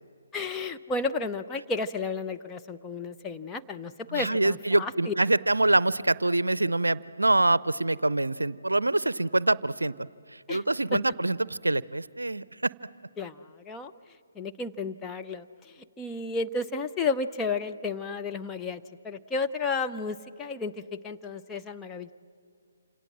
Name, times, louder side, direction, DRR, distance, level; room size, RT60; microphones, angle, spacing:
voice 1, 0.3-5.1 10.5-10.6 10.9-11.0 13.2-13.4 13.6-13.9 14.4-15.4 16.0-20.7 21.0-22.1, left 4 dB, 10° left, 5 dB, 0.7 m, -32 dB
voice 2, 4.1-9.9 10.5-12.7, right 2 dB, 75° right, 20 dB, 0.6 m, -25 dB
28.0 x 27.0 x 7.6 m, 2.3 s
figure-of-eight pair, 140°, 0 cm